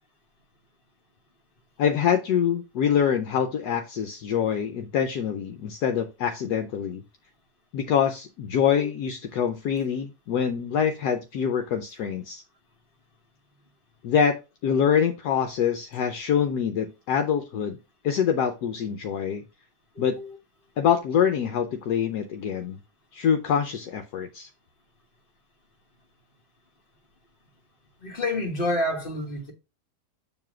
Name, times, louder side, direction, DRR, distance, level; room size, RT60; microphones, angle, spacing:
voice 1, 1.8-7.0 7.7-12.4 14.0-17.8 18.0-19.4 20.0-20.2 20.8-22.8 23.1-24.5, left 8 dB, 70° left, 1.2 m, -25 dB
voice 2, 19.9-20.4 28.0-29.5, left 1 dB, 35° left, 1.3 m, -29 dB
7.0 x 3.1 x 5.9 m
omnidirectional pair, 1.8 m